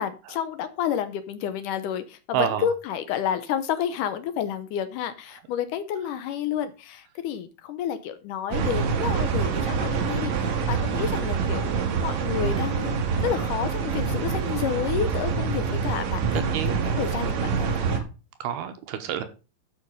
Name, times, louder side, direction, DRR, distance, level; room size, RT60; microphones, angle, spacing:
voice 1, 0.0-16.6 17.0-18.0, left 9 dB, 85° left, 1.8 m, -30 dB
voice 2, 2.3-2.7 16.3-16.7 17.8-18.0 18.4-19.2, right 9 dB, 75° right, 2.8 m, -28 dB
sound 1, 8.5-18.0, right 6 dB, 55° right, 2.2 m, -26 dB
12.0 x 5.6 x 5.3 m
omnidirectional pair, 4.7 m